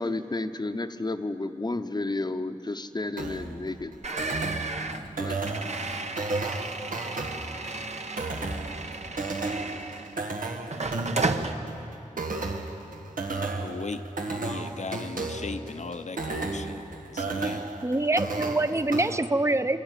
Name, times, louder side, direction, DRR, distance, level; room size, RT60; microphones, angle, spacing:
voice 1, 0.0-4.0 5.2-5.4, left 2 dB, 30° left, 9 dB, 0.9 m, -31 dB
sound 1, 3.2-19.2, right 3 dB, 90° right, 1.5 m, -33 dB
sound 2, 4.0-10.3 10.7-11.5, right 3 dB, 55° right, 1.1 m, -33 dB
voice 2, 13.6-14.0 14.3-16.8 17.1-17.6, left 4 dB, 60° left, 10 dB, 0.9 m, -37 dB
voice 3, 17.8-19.8, right 2 dB, 20° right, 10 dB, 0.8 m, -25 dB
24.0 x 13.0 x 9.2 m, 2.9 s
wide cardioid pair, 65°, 14 cm